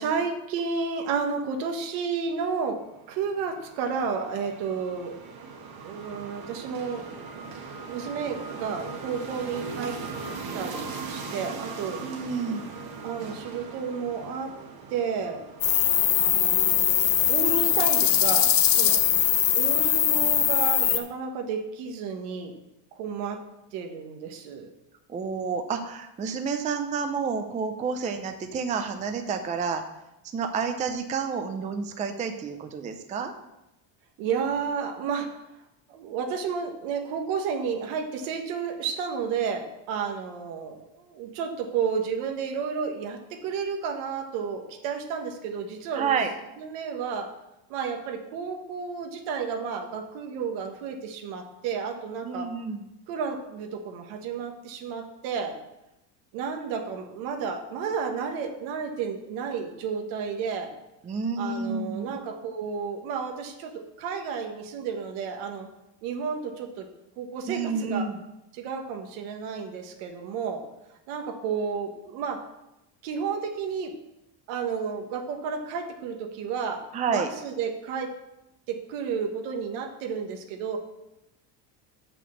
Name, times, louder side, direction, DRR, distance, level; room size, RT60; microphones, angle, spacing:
voice 1, 0.0-2.8 3.1-5.2 5.8-7.2 7.9-10.0 10.5-12.0 13.0-14.5 14.9-15.4 16.3-19.0 19.5-22.5 22.9-23.4 23.7-24.7 34.2-35.3 35.9-46.2 46.6-47.3 47.7-52.5 53.1-55.6 56.3-60.7 61.4-65.7 66.0-66.9 67.2-68.1 68.5-70.6 71.1-72.4 73.0-73.9 74.5-76.8 77.1-78.1 78.7-80.8, right 6 dB, 80° right, 4 dB, 1.5 m, -31 dB
sound 1, 2.9-17.3, right 4 dB, 50° right, 1.4 m, -40 dB
voice 2, 12.0-12.8 25.1-29.8 30.3-33.3 45.9-46.3 52.2-52.8 61.0-62.1 67.5-68.2 76.9-77.3, right 5 dB, 15° right, 6 dB, 0.4 m, -29 dB
sound 2, 15.6-21.0, left 10 dB, 45° left, 0.9 m, -21 dB
6.1 x 6.0 x 7.1 m, 0.91 s
cardioid pair, 150°, 48 cm